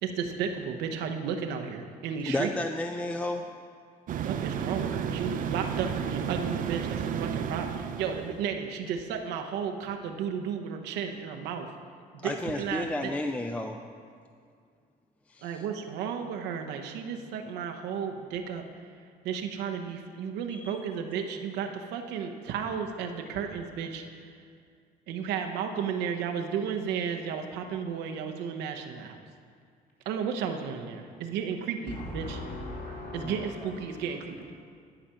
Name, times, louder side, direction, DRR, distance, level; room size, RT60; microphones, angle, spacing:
voice 1, 0.0-2.5 4.2-11.7 12.2-13.1 15.4-18.9 19.2-24.4 25.1-29.2 30.1-32.4 33.1-34.5, right 7 dB, 85° right, 4 dB, 0.8 m, -33 dB
voice 2, 2.3-3.5 12.2-13.8 15.3-15.6 20.5-20.8 33.2-33.5, left 1 dB, 10° left, 5 dB, 0.4 m, -32 dB
sound 1, 4.1-8.5, right 8 dB, 50° right, 0.5 m, -32 dB
voice 3, 31.9-34.2, left 2 dB, 55° left, -4 dB, 2.7 m, -39 dB
11.5 x 5.0 x 5.7 m, 2.2 s
cardioid pair, 110°, 17 cm